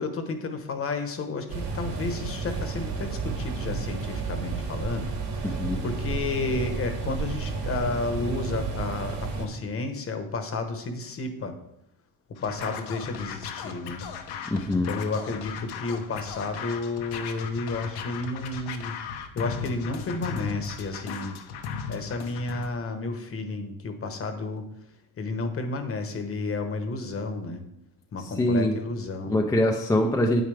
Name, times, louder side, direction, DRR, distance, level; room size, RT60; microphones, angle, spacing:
voice 1, 0.0-11.5 12.4-14.0 14.8-19.0 19.3-21.4 21.9-24.7 25.2-27.6 28.1-29.4, left 3 dB, 35° left, 7 dB, 1.1 m, -32 dB
sound 1, 1.5-9.5, right 4 dB, 65° right, 3.1 m, -32 dB
voice 2, 5.4-5.8 14.5-14.9 28.4-28.7 29.3-30.4, left 1 dB, 10° left, 1 dB, 0.5 m, -23 dB
Scratching (performance technique), 12.4-22.7, left 6 dB, 75° left, 1.1 m, -37 dB
9.1 x 8.8 x 3.4 m, 0.81 s
cardioid pair, 150°, 40 cm